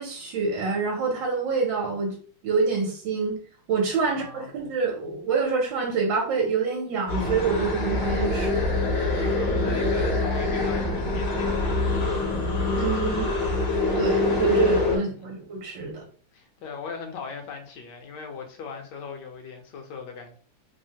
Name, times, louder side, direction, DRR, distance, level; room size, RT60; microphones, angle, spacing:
voice 1, 0.0-2.1 2.4-3.4 3.7-8.7 12.8-13.3 14.0-16.0, right 4 dB, 70° right, 1.3 m, -26 dB
voice 2, 4.0-4.5 9.5-12.2 14.9-15.1 16.3-20.4, left 5 dB, 70° left, 1.1 m, -39 dB
sound 1, 7.1-15.0, left 2 dB, 50° left, 0.7 m, -25 dB
3.2 x 2.1 x 2.7 m
omnidirectional pair, 2.2 m